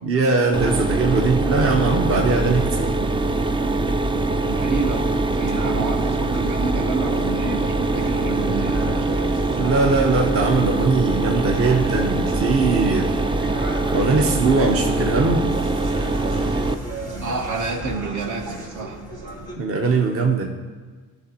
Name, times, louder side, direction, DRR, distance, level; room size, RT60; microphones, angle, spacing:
voice 1, 0.0-3.0 9.6-13.2 13.9-15.5 19.6-20.5, right 3 dB, 40° right, 2 dB, 0.8 m, -20 dB
Mechanisms, 0.5-16.7, right 2 dB, 15° right, 0.4 m, -23 dB
sound 1, 2.2-19.6, right 1 dB, 80° right, 2.8 m, -36 dB
voice 2, 4.4-9.3 17.2-19.0, right 3 dB, 60° right, 3 dB, 1.1 m, -29 dB
13.0 x 6.1 x 2.8 m, 1.4 s
supercardioid pair, 80°, 34 cm